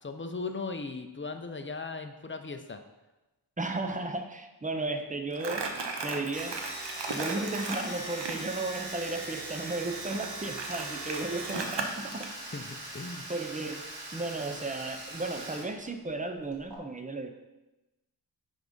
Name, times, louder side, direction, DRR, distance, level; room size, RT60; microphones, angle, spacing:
voice 1, 0.0-2.8 12.5-13.2, left 4 dB, 30° left, 7 dB, 0.5 m, -38 dB
voice 2, 3.6-5.7 6.0-6.6 7.1-12.3 13.3-13.9 14.1-17.3, right 2 dB, 20° right, 5 dB, 0.6 m, -34 dB
Crumpling crinkling, 5.3-8.4 10.1-12.3, right 4 dB, 90° right, 0.7 m, -36 dB
Domestic sounds home sounds, 6.3-15.7 15.9-16.8, right 2 dB, 65° right, 1.5 m, -40 dB
5.9 x 3.6 x 5.2 m, 1.0 s
wide cardioid pair, 65°, 41 cm